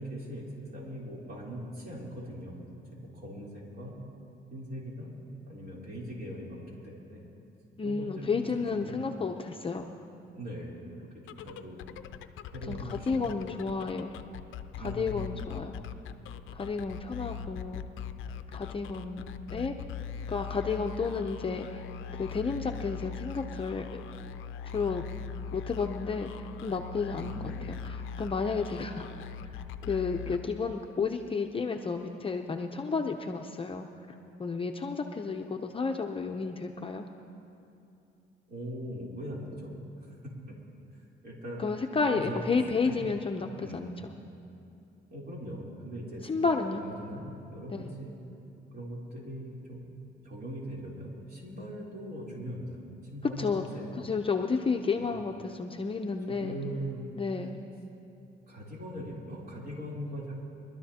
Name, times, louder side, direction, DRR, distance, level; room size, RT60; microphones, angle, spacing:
voice 1, 0.0-2.6 2.9-3.9 4.5-5.1 5.5-7.2 7.8-9.0 10.4-11.8 12.4-14.0 14.8-15.5 27.2-27.7 38.5-39.7 40.0-40.2 40.5-40.6 41.2-41.6 42.1-42.6 42.9-43.0 43.6-43.9 45.1-48.1 48.7-49.9 50.2-52.7 53.0-53.9 55.0-55.1 56.4-57.2 58.5-60.5, equal, 50° right, -4 dB, 3.4 m, -41 dB
voice 2, 7.8-9.9 12.7-14.1 14.8-15.7 16.5-17.8 18.5-19.7 20.3-21.8 22.2-24.0 24.7-25.0 25.5-26.3 26.6-27.3 27.8-29.1 29.8-33.9 34.4-37.1 41.6-43.9 46.2-46.8 47.7-47.9 53.4-53.7 53.9-56.6 57.2-57.5, left 4 dB, 25° left, 3 dB, 0.6 m, -31 dB
sound 1, 11.2-30.9, left 7 dB, 80° left, 0.5 m, -41 dB
23.5 x 12.5 x 2.9 m, 2.7 s
cardioid pair, 90°, 20 cm